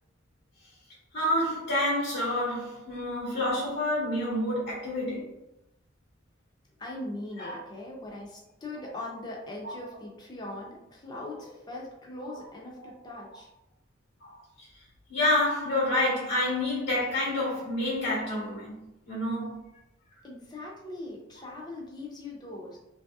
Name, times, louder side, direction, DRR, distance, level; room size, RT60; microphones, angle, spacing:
voice 1, 1.1-5.3 7.4-7.6 9.6-9.7 12.3-12.4 14.2-14.7 15.1-19.6, left 1 dB, 80° left, 1.3 m, -28 dB
voice 2, 6.8-13.5 20.2-22.8, left 2 dB, 20° left, 0.5 m, -40 dB
3.0 x 2.7 x 2.3 m
head